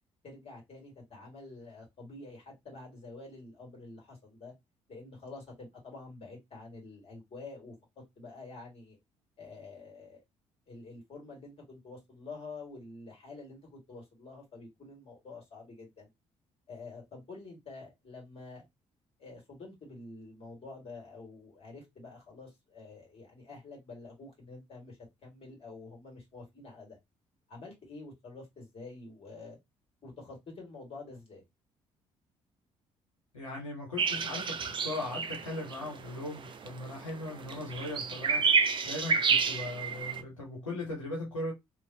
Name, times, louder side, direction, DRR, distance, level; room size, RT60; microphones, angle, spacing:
voice 1, 0.2-4.5 4.9-9.0 9.4-10.2 10.7-16.1 16.7-18.7 19.2-27.0 27.5-29.6 30.0-31.4, left 3 dB, 35° left, 1.9 m, -48 dB
voice 2, 33.3-38.5 38.8-41.5, left 2 dB, 85° left, 0.7 m, -38 dB
sound 1, 34.0-40.2, right 5 dB, 30° right, 0.4 m, -30 dB
3.0 x 2.3 x 2.7 m
figure-of-eight pair, 45°, 16 cm